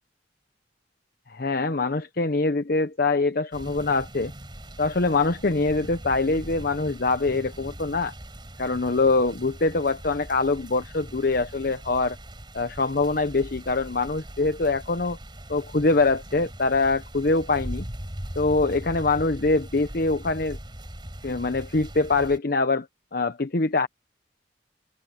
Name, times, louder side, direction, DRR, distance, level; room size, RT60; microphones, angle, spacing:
voice 1, 1.3-4.3 4.8-8.1 8.6-12.2 12.5-15.2 15.5-17.9 18.4-20.6 21.2-22.9 23.1-23.9, left 3 dB, 55° left, 0.9 m, -24 dB
sound 1, 3.5-22.4, right 1 dB, 25° right, 4.3 m, -40 dB
open air
head